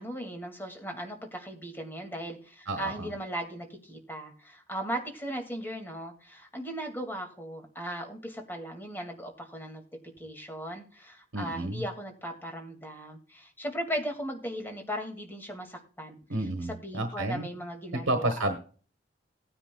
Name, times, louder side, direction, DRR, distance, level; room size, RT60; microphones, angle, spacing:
voice 1, 0.0-9.8 10.2-16.2 16.6-18.6, equal, 10° left, 3 dB, 2.1 m, -37 dB
voice 2, 2.7-3.1 11.3-11.8 16.3-17.5 17.9-18.6, right 1 dB, 80° right, 6 dB, 1.2 m, -31 dB
18.0 x 9.9 x 2.3 m, 0.41 s
head